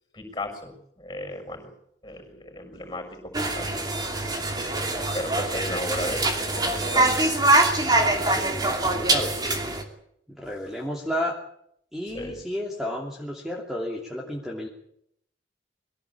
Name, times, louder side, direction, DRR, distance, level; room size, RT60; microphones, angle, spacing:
voice 1, 0.1-1.7 2.0-3.9 5.1-7.2 12.1-12.4, left 1 dB, 20° left, 5 dB, 6.5 m, -35 dB
sound 1, 3.3-9.8, right 2 dB, 20° right, 2.8 m, -24 dB
voice 2, 7.8-9.4 10.3-11.3 11.9-14.7, equal, ahead, -2 dB, 2.8 m, -32 dB
23.0 x 17.0 x 8.5 m, 0.71 s
head